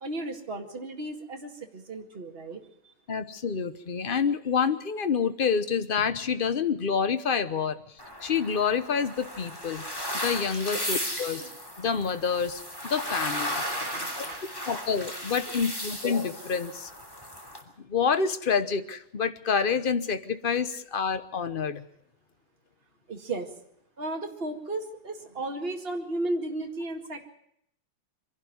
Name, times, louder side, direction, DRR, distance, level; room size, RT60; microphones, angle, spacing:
voice 1, 0.0-2.9 10.7-10.9 11.2-11.3 13.3-14.8 23.1-23.5 24.0-27.2, right 2 dB, 30° right, 3 dB, 2.2 m, -35 dB
voice 2, 3.1-7.8 8.2-9.8 10.2-11.4 11.8-13.6 14.7-16.9 17.9-21.8, left 6 dB, 40° left, 11 dB, 0.7 m, -27 dB
sound 1, 8.0-17.6, equal, 10° left, 2.9 m, -35 dB
24.5 x 11.5 x 9.5 m, 0.74 s
omnidirectional pair, 2.2 m